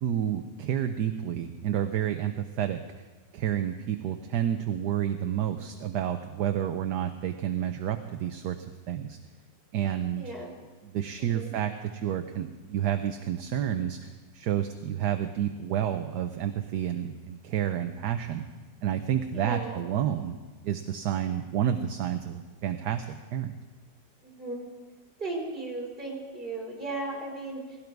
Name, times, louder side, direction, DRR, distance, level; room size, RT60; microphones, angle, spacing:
voice 1, 0.0-3.0 3.3-9.2 9.7-10.3 10.8-18.4 18.8-20.4 20.6-23.0 23.3-23.5, right 10 dB, 70° right, 7 dB, 1.3 m, -30 dB
voice 2, 10.1-10.6 11.2-11.5 19.3-19.8 24.2-24.7 25.2-27.8, right 2 dB, 30° right, -3 dB, 4.4 m, -36 dB
18.5 x 17.0 x 4.7 m, 1.3 s
omnidirectional pair, 2.0 m